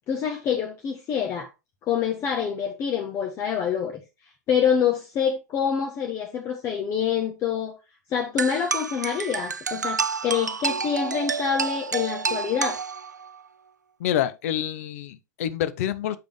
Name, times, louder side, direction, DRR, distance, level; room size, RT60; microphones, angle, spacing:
voice 1, 0.1-1.5 1.8-4.0 4.5-7.8 8.1-12.8, left 7 dB, 30° left, 1.1 m, -26 dB
sound 1, 8.4-13.4, right 5 dB, 85° right, 0.4 m, -29 dB
voice 2, 14.0-16.2, left 11 dB, 55° left, 0.8 m, -27 dB
7.9 x 5.1 x 3.4 m
figure-of-eight pair, 100°, 9 cm